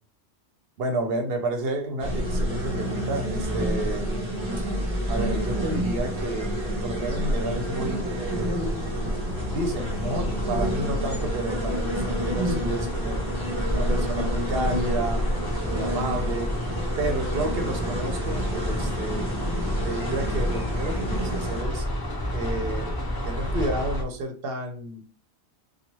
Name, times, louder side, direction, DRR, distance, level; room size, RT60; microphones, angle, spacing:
voice 1, 0.8-4.2 5.1-8.6 9.5-13.2 13.7-15.3 15.7-16.5 17.0-19.3 19.8-21.9 22.3-22.9 23.2-25.0, right 2 dB, 65° right, 5 dB, 0.8 m, -31 dB
sound 1, 2.0-21.6, equal, 25° right, 0.9 m, -29 dB
sound 2, 5.0-24.0, equal, 35° left, 0.3 m, -31 dB
2.9 x 2.3 x 2.9 m, 0.41 s
omnidirectional pair, 1.1 m